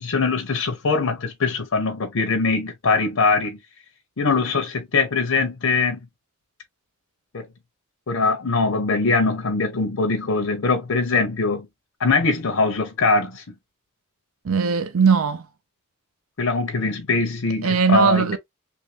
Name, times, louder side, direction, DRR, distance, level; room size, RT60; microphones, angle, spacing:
voice 1, 0.0-3.6 4.2-6.0 7.3-7.5 8.1-11.7 12.0-13.4 16.4-18.4, left 4 dB, 80° left, 0.7 m, -22 dB
voice 2, 14.4-15.5 17.6-18.4, right 6 dB, 85° right, 0.5 m, -19 dB
3.1 x 2.5 x 3.3 m
head